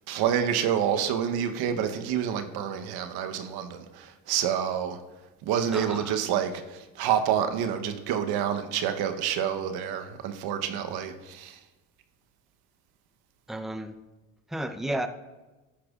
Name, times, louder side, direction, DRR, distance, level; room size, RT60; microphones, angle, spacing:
voice 1, 0.1-5.0 5.4-11.6, right 9 dB, 70° right, 7 dB, 1.0 m, -28 dB
voice 2, 5.7-6.2 13.5-13.9 14.5-15.1, right 1 dB, ahead, 8 dB, 0.6 m, -32 dB
13.0 x 10.0 x 2.4 m, 1.1 s
supercardioid pair, 75°, 39 cm